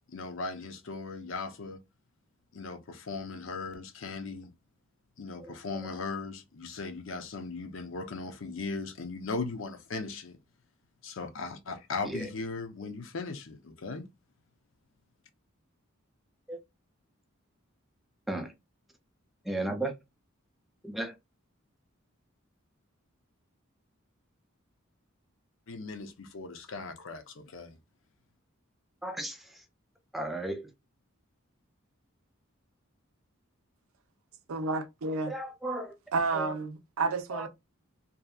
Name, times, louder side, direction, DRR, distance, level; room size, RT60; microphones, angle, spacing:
voice 1, 0.1-1.8 2.5-4.5 5.2-10.4 11.0-14.1 25.7-27.8, left 3 dB, 65° left, 0.6 m, -38 dB
voice 2, 19.4-20.0 20.8-21.2 29.0-29.6 30.1-30.7 35.3-35.9 36.3-36.5 37.3-37.5, right 2 dB, ahead, 0.4 m, -35 dB
voice 3, 34.5-35.3 36.1-37.5, right 3 dB, 80° right, 0.5 m, -30 dB
2.7 x 2.5 x 2.3 m
head